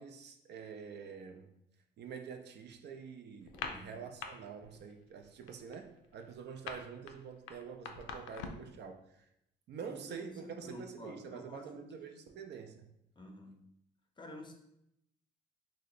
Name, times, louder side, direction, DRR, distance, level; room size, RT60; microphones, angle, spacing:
voice 1, 0.0-1.6 2.0-9.0 9.7-12.9, right 6 dB, 60° right, 6 dB, 0.4 m, -47 dB
sound 1, 3.4-4.3 4.6-4.9 5.2-8.7, left 6 dB, 85° left, 0.4 m, -43 dB
voice 2, 3.5-4.0 9.8-12.2 13.2-13.7 14.2-14.5, left 1 dB, 25° left, 3 dB, 0.5 m, -50 dB
2.8 x 2.2 x 3.8 m, 0.80 s
cardioid pair, 90°, 20 cm